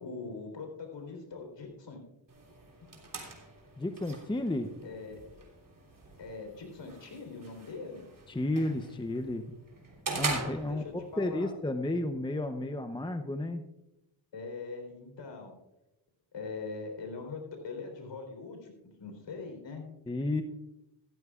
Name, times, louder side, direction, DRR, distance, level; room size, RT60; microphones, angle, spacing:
voice 1, 0.0-2.0 4.8-5.4 6.2-8.0 10.7-11.5 14.3-15.5 16.3-18.7 19.0-19.9, left 4 dB, 60° left, 3 dB, 4.0 m, -42 dB
sound 1, 2.3-11.3, right 3 dB, 40° right, 3.4 m, -42 dB
voice 2, 3.8-4.7 8.3-9.5 10.1-13.6 20.1-20.4, left 1 dB, 10° left, 7 dB, 0.7 m, -32 dB
15.5 x 13.5 x 2.4 m, 0.91 s
cardioid pair, 80°, 48 cm